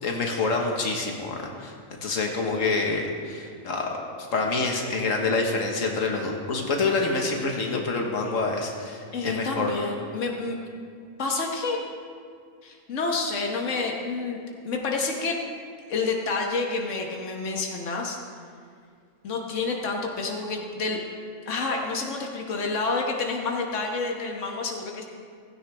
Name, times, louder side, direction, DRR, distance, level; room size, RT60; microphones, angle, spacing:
voice 1, 0.0-1.7 2.0-3.9 4.3-9.7, left 3 dB, 90° left, 1 dB, 1.8 m, -27 dB
voice 2, 9.1-10.6 11.2-11.8 12.6-14.4 14.6-15.4 15.9-18.2 19.2-21.0 21.5-25.0, left 3 dB, 70° left, 0 dB, 1.6 m, -29 dB
16.0 x 16.0 x 3.4 m, 2.2 s
omnidirectional pair, 1.3 m